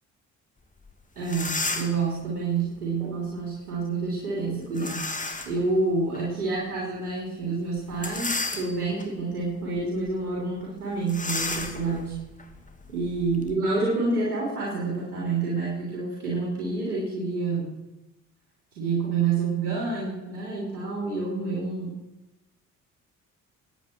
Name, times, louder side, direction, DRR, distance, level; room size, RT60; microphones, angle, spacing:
sound 1, 0.9-1.0 1.2-2.1 4.8-5.6 6.1-6.2 7.9-9.0 9.6-9.8 10.1-10.2 11.1-13.5, left 3 dB, 15° left, 2.3 m, -32 dB
voice 1, 1.2-5.1 5.4-12.2 12.9-17.7 18.8-22.0, right 3 dB, 85° right, -5 dB, 3.6 m, -28 dB
23.5 x 9.6 x 4.5 m, 0.99 s
hypercardioid pair, 50°, 44 cm